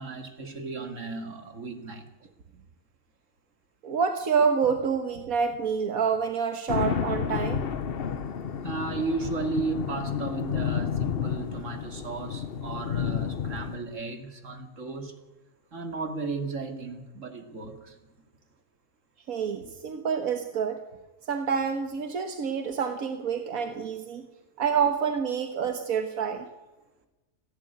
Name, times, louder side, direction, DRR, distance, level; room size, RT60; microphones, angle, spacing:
voice 1, 0.0-2.1 8.6-15.2 15.7-18.0, right 3 dB, 60° right, 6 dB, 2.8 m, -35 dB
voice 2, 3.8-7.7 19.3-20.8 21.3-24.2 24.6-26.4, right 6 dB, 85° right, 7 dB, 1.7 m, -27 dB
sound 1, 6.7-13.8, left 7 dB, 50° left, 1.0 m, -31 dB
29.5 x 11.5 x 9.4 m, 1.1 s
omnidirectional pair, 1.5 m